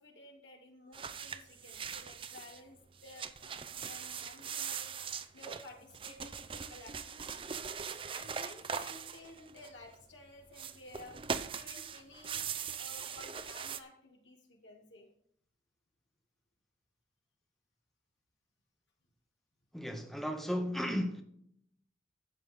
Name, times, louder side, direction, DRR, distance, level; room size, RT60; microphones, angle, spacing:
voice 1, 0.0-2.8 3.0-4.9 5.3-7.5 8.1-11.2 11.5-15.1, left 1 dB, 90° left, 2.9 m, -54 dB
sound 1, 0.9-2.6 3.0-9.9 10.5-13.8, right 6 dB, 30° right, 0.5 m, -41 dB
voice 2, 19.7-21.2, equal, ahead, 0.9 m, -34 dB
13.0 x 8.4 x 3.7 m
head